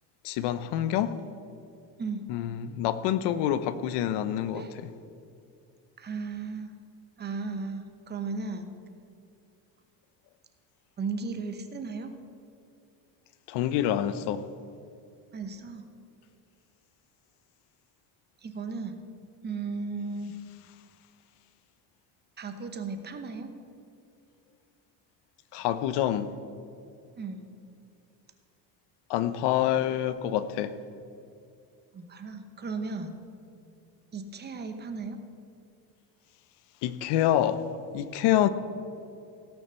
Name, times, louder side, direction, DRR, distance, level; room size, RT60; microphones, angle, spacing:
voice 1, 0.2-1.1 2.3-4.9 13.5-14.4 25.5-26.3 29.1-30.7 36.8-37.6 37.9-38.5, left 11 dB, 70° left, 13 dB, 0.9 m, -27 dB
voice 2, 6.0-6.7 7.2-8.7 11.0-12.1 15.3-15.9 18.4-19.0 19.4-20.4 22.4-23.5 27.2-27.5 31.9-33.2 34.1-35.2, right 4 dB, 25° right, 7 dB, 0.9 m, -35 dB
16.5 x 6.5 x 6.9 m, 2.6 s
cardioid pair, 155°, 42 cm